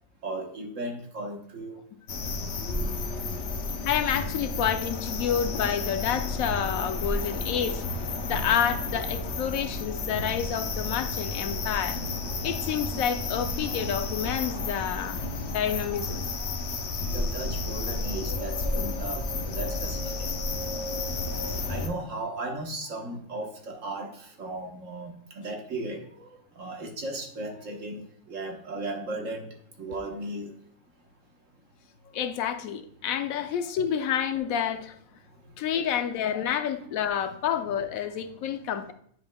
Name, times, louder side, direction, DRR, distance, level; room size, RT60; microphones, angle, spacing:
voice 1, 0.2-1.8 2.7-3.1 3.4-3.6 5.2-5.3 17.1-20.4 21.7-30.6 35.2-35.6 36.3-36.4 36.9-37.0, right 2 dB, 65° right, 1.5 m, -36 dB
sound 1, 2.1-21.9, left 3 dB, 60° left, 0.9 m, -31 dB
voice 2, 3.8-7.9 8.2-12.0 12.4-16.2 32.1-34.9 35.6-38.9, left 8 dB, 80° left, 1.0 m, -29 dB
9.3 x 5.2 x 2.2 m
omnidirectional pair, 1.5 m